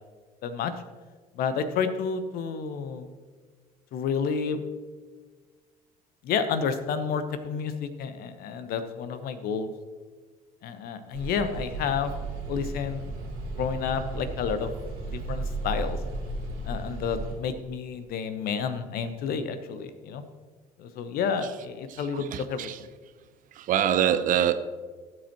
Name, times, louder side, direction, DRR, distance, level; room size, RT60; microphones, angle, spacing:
voice 1, 0.4-0.7 1.3-3.1 3.9-4.6 6.2-9.7 10.6-12.1 12.5-13.1 13.6-14.7 15.1-16.0 16.6-20.2 20.8-22.7, left 6 dB, 50° left, 10 dB, 1.0 m, -30 dB
sound 1, 11.1-17.3, right 2 dB, 70° right, 2.5 m, -34 dB
voice 2, 21.9-22.8 23.5-24.5, right 10 dB, 45° right, 12 dB, 0.6 m, -25 dB
17.5 x 7.8 x 3.0 m, 1.5 s
figure-of-eight pair, 55°, 19 cm